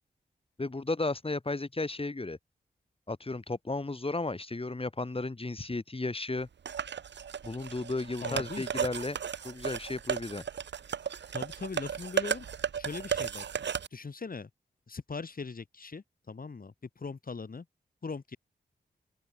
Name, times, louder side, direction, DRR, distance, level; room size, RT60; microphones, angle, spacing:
voice 1, 0.6-2.4 3.1-6.5 7.4-9.2 9.4-10.4, left 2 dB, 30° left, 3.5 m, -34 dB
sound 1, 6.7-13.9, right 7 dB, 80° right, 3.3 m, -35 dB
voice 2, 8.2-8.7 11.3-12.5 12.8-13.5 13.9-14.5 14.9-17.7 18.0-18.4, left 4 dB, 55° left, 3.6 m, -40 dB
open air
supercardioid pair, 40°, 18 cm